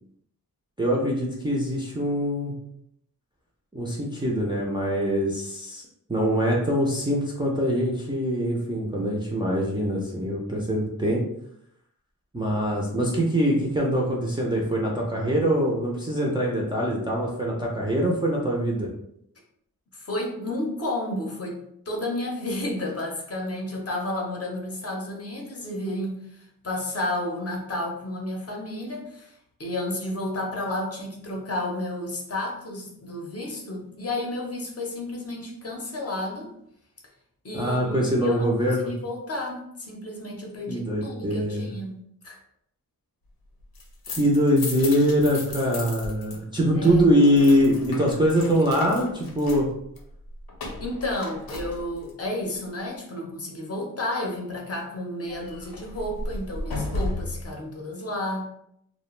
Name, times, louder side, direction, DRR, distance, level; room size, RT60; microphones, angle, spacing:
voice 1, 0.8-2.5 3.7-5.8 6.1-11.2 12.3-18.9 37.5-38.9 40.7-41.6 44.1-49.7, equal, 15° right, -4 dB, 0.3 m, -23 dB
voice 2, 19.9-29.3 29.6-36.5 37.4-41.9 42.2-42.4 46.7-47.1 50.8-58.4, left 1 dB, 40° left, -1 dB, 0.6 m, -31 dB
sound 1, 43.6-46.4 46.6-52.2 55.3-57.5, left 2 dB, 80° left, 0.6 m, -35 dB
2.3 x 2.1 x 3.0 m, 0.74 s
wide cardioid pair, 140°, 36 cm